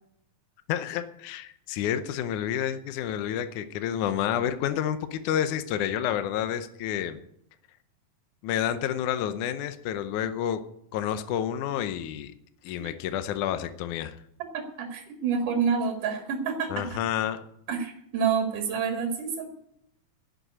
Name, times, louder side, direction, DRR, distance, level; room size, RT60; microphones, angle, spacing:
voice 1, 0.7-7.2 8.4-10.6 10.9-12.3 12.6-14.2 16.7-17.4, left 10 dB, 75° left, 9 dB, 2.1 m, -29 dB
voice 2, 14.5-17.0 17.7-19.5, right 6 dB, 65° right, 3 dB, 3.2 m, -28 dB
11.5 x 8.0 x 9.8 m, 0.75 s
omnidirectional pair, 4.0 m